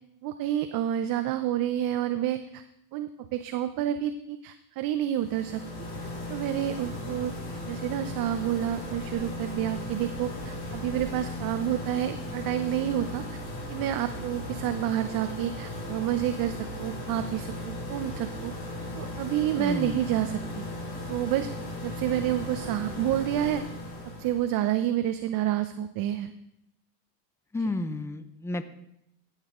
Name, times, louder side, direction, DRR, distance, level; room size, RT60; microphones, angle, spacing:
voice 1, 0.2-2.6 2.9-5.6 6.3-7.3 7.7-13.4 13.7-18.5 18.9-20.6 21.1-21.5 21.8-23.6 24.2-26.3 27.7-27.8, right 11 dB, 45° right, 9 dB, 0.7 m, -29 dB
sound 1, 5.1-24.5, left 1 dB, 50° left, 4.7 m, -37 dB
voice 2, 19.6-20.1 27.5-28.6, left 2 dB, 5° left, 12 dB, 0.5 m, -31 dB
15.0 x 8.2 x 3.7 m, 0.79 s
supercardioid pair, 110°, 50 cm